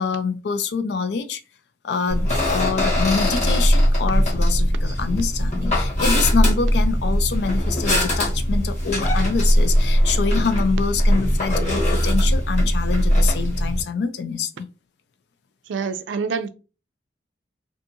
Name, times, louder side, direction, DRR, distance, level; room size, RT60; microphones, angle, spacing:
voice 1, 0.0-1.4 1.8-14.7, left 5 dB, 70° left, 0.4 m, -26 dB
sound 1, 2.1-13.8, equal, 40° left, 1.0 m, -20 dB
voice 2, 15.7-16.5, right 5 dB, 90° right, 0.4 m, -26 dB
2.7 x 2.5 x 2.5 m
head